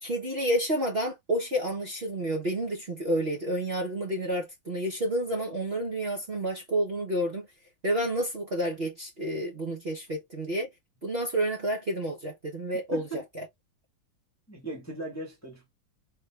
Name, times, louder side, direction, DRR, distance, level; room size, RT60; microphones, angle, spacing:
voice 1, 0.0-7.5 7.8-10.7 11.0-13.4, right 1 dB, 35° right, 1.2 m, -30 dB
voice 2, 12.9-13.2 14.5-15.7, right 1 dB, 10° left, 1.2 m, -38 dB
4.0 x 3.2 x 3.4 m
omnidirectional pair, 2.1 m